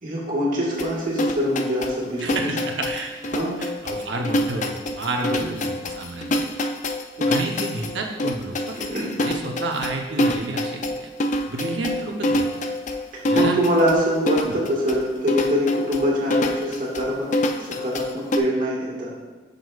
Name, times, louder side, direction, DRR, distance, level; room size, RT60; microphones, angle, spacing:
voice 1, 0.0-2.5 3.3-3.5 5.2-5.5 7.2-7.3 8.7-9.1 13.3-17.3 17.6-19.1, equal, 50° right, -3 dB, 1.7 m, -24 dB
sound 1, 0.8-18.4, left 1 dB, 45° left, 0.5 m, -26 dB
voice 2, 2.2-3.1 3.6-6.5 7.3-8.8 9.2-11.1 11.5-12.4 13.2-13.6 14.5-14.6, right 2 dB, 80° right, 2 dB, 0.8 m, -30 dB
7.8 x 6.8 x 2.4 m, 1.3 s
head